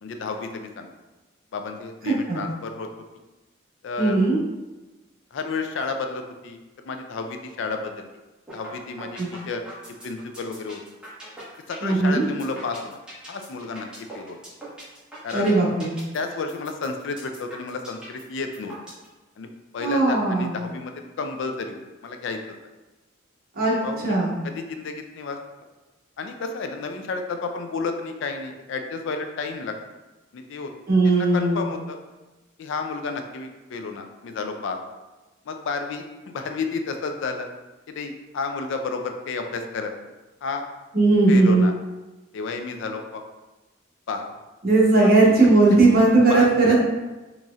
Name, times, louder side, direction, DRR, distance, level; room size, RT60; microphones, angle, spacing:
voice 1, 0.0-0.9 1.5-2.9 3.8-4.2 5.3-8.1 8.5-9.2 9.5-9.6 10.0-10.8 11.7-13.0 13.3-13.9 14.1-14.4 15.2-15.5 16.1-18.8 19.4-19.5 19.7-22.4 23.8-24.1 24.5-25.4 26.2-29.7 30.3-30.7 31.0-32.0 32.6-34.8 35.5-36.0 36.3-37.5 37.9-39.9 40.4-40.6 41.3-41.7 42.3-43.2 44.1-44.2 45.0-45.1 46.3-46.8, left 4 dB, 65° left, 5 dB, 0.4 m, -31 dB
voice 2, 4.0-4.4 9.2-9.3 11.8-12.3 15.3-15.9 19.8-20.6 23.6-23.7 24.0-24.3 30.9-31.7 40.9-41.7 44.6-46.8, right 2 dB, 50° right, -4 dB, 0.9 m, -18 dB
sound 1, 8.5-8.7 9.0-19.1, right 1 dB, 5° right, 1.2 m, -41 dB
4.0 x 3.0 x 2.4 m, 1.1 s
head